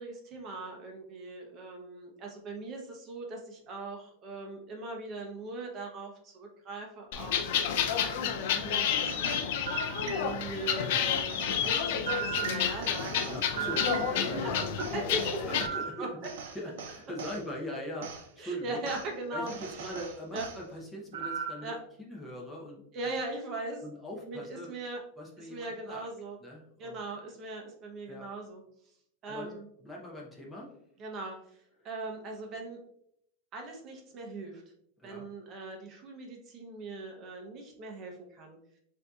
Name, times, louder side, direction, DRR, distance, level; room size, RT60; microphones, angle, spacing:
voice 1, 0.0-15.6 16.0-16.3 18.4-19.9 20.3-20.5 21.6-21.8 22.9-23.8 24.3-25.0 25.4-26.4 26.8-28.6 29.2-29.7 31.0-32.8 33.5-34.6 35.0-38.6, right 2 dB, 25° right, 1 dB, 0.7 m, -40 dB
sound 1, 7.1-15.7, left 8 dB, 60° left, 0.4 m, -30 dB
sound 2, 8.8-10.6 11.3-14.5 14.8-17.4 18.0-18.2 18.8-19.1 19.5-20.6 21.1-21.7, right 7 dB, 80° right, 0.7 m, -38 dB
voice 2, 13.3-14.7 15.0-16.1 16.5-18.8 19.3-21.7 22.0-22.8 23.8-24.7 25.2-26.1 26.4-27.0 28.1-28.2 29.2-29.5 29.8-30.7 35.0-35.2, equal, 10° left, -2 dB, 0.7 m, -41 dB
6.4 x 2.7 x 2.3 m, 0.71 s
supercardioid pair, 165°, 0 cm